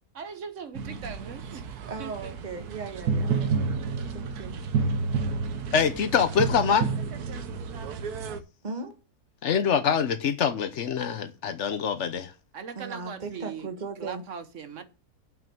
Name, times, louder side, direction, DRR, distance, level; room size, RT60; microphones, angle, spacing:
voice 1, 0.1-2.4 12.5-14.8, right 6 dB, 55° right, 1.2 m, -40 dB
sound 1, 0.8-8.4, right 5 dB, 75° right, 1.4 m, -30 dB
voice 2, 1.9-3.3 4.1-4.6 8.6-8.9 12.7-14.2, right 4 dB, 30° right, 1.5 m, -37 dB
voice 3, 5.7-6.9 9.4-12.3, left 7 dB, 55° left, 1.0 m, -25 dB
7.5 x 5.7 x 7.7 m
omnidirectional pair, 1.7 m